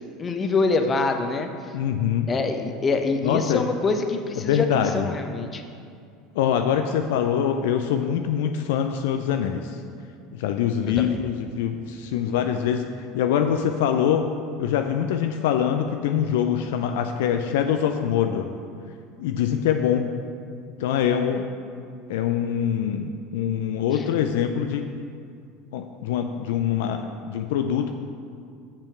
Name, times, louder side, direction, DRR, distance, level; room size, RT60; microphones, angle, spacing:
voice 1, 0.2-1.5 2.3-5.6 11.0-11.1 23.9-24.0, left 3 dB, 30° left, 6 dB, 0.8 m, -25 dB
voice 2, 1.7-2.3 3.2-3.7 4.4-5.0 6.3-9.8 10.3-12.8 13.1-14.3 14.6-18.5 19.2-20.1 20.8-21.5 22.1-24.8 25.7-27.0 27.3-27.9, left 9 dB, 70° left, 6 dB, 0.4 m, -24 dB
7.0 x 5.5 x 5.8 m, 2.3 s
hypercardioid pair, 75°, 0 cm